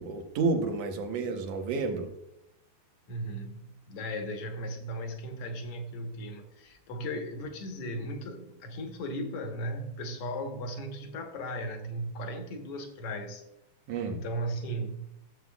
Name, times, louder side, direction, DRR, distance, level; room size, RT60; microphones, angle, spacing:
voice 1, 0.0-2.1 13.9-14.2, right 4 dB, 80° right, 4 dB, 1.4 m, -30 dB
voice 2, 3.1-13.4 14.1-15.1, equal, 65° left, 4 dB, 1.4 m, -36 dB
15.0 x 7.9 x 2.3 m, 0.85 s
omnidirectional pair, 4.2 m